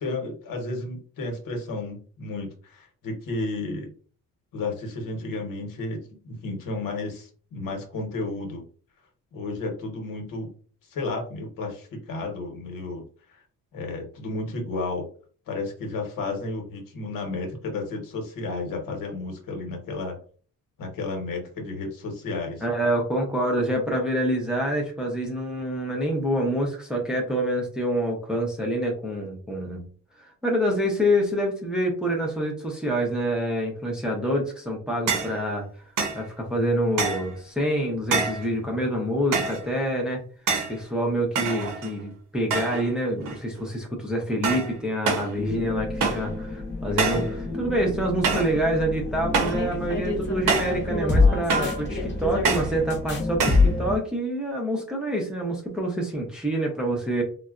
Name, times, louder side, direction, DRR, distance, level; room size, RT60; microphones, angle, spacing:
voice 1, 0.0-3.9 4.5-8.6 9.3-10.5 10.9-13.0 13.3-13.4 13.7-15.0 15.5-20.2 20.8-22.6, left 2 dB, 75° left, 2 dB, 1.1 m, -32 dB
voice 2, 22.6-29.8 30.2-35.7 36.1-40.2 40.7-57.2, equal, ahead, -1 dB, 0.6 m, -26 dB
sound 1, 35.1-35.4 36.0-36.2 37.0-37.3 38.1-38.5 39.3-39.7 40.5-40.8 41.4-42.0 42.5-42.9 43.2-43.7 44.4-44.7 45.1-45.3 46.0-46.3 47.0-47.3 48.2-48.6 49.3-49.7 50.5-50.8 51.5-51.8 52.4-52.8 53.4-53.7, right 4 dB, 70° right, 0.8 m, -26 dB
sound 2, 45.4-54.0, left 3 dB, 35° left, 0.9 m, -26 dB
4.0 x 2.2 x 2.4 m, 0.43 s
wide cardioid pair, 170°, 34 cm